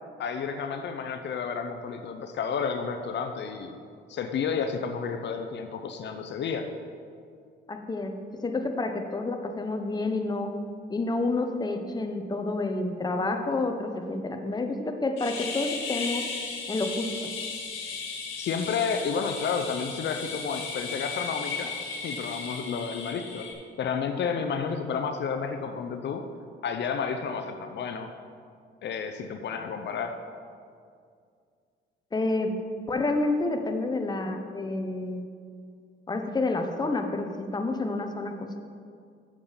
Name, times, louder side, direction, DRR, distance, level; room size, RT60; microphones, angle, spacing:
voice 1, 0.2-3.8 4.1-6.7 18.4-21.7 22.0-23.5 23.8-26.2 26.6-28.1 28.8-30.1, left 6 dB, 60° left, 7 dB, 0.6 m, -31 dB
voice 2, 7.7-10.5 10.9-16.3 16.7-17.3 32.1-32.6 32.9-35.3 36.1-38.6, left 2 dB, 20° left, 5 dB, 0.8 m, -29 dB
sound 1, 15.2-23.5, left 5 dB, 85° left, 1.5 m, -35 dB
7.3 x 6.7 x 5.5 m, 2.3 s
cardioid pair, 90°, 20 cm